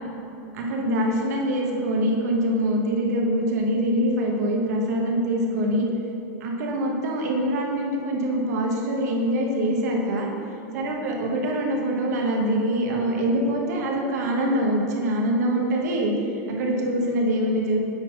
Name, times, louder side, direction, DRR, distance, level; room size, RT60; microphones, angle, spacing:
voice 1, 0.5-5.9 6.4-10.3 10.7-16.1 16.5-17.8, right 1 dB, 75° right, 0 dB, 1.4 m, -24 dB
8.7 x 4.0 x 5.6 m, 2.9 s
supercardioid pair, 170°, 9 cm